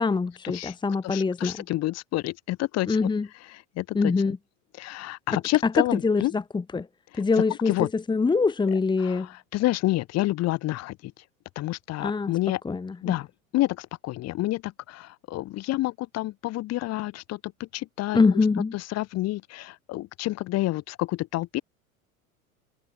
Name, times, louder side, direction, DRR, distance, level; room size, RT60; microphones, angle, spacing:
voice 1, 0.0-1.6 2.9-3.3 4.0-4.4 5.3-5.4 5.7-6.9 7.1-7.7 8.1-9.3 12.0-12.3 12.7-13.1 18.1-18.7, left 4 dB, 10° left, 1.6 m, -24 dB
voice 2, 1.0-3.1 3.5-4.1 4.8-6.3 7.1-7.2 7.7-7.9 9.0-11.1 11.6-12.6 13.0-13.3 13.5-18.2 18.7-21.6, left 17 dB, 40° left, 3.7 m, -29 dB
figure-of-eight pair, 85°, 41 cm